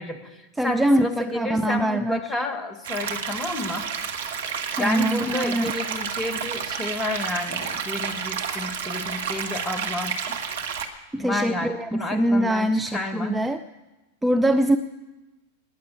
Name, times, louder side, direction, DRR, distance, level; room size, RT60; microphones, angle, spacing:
voice 1, 0.0-3.9 4.8-10.4 11.2-13.4, left 2 dB, 20° left, 8 dB, 1.5 m, -30 dB
voice 2, 0.6-2.2 4.8-5.7 11.1-13.6 14.2-14.8, right 1 dB, 5° right, 7 dB, 0.5 m, -23 dB
sound 1, 2.8-10.9, right 6 dB, 60° right, 1.4 m, -30 dB
19.0 x 6.8 x 8.5 m, 1.1 s
figure-of-eight pair, 90°, 0 cm